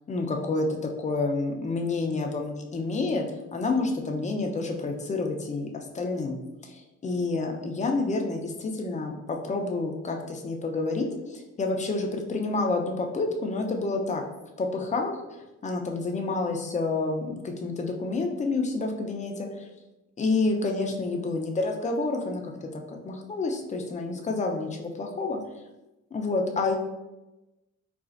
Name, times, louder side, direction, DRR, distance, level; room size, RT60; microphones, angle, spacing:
voice 1, 0.1-0.7 1.0-3.2 3.5-6.4 6.6-14.2 14.6-19.7 20.2-25.4 26.1-26.8, left 3 dB, 25° left, 2 dB, 0.5 m, -29 dB
4.1 x 2.4 x 2.4 m, 1.0 s
cardioid pair, 90°, 30 cm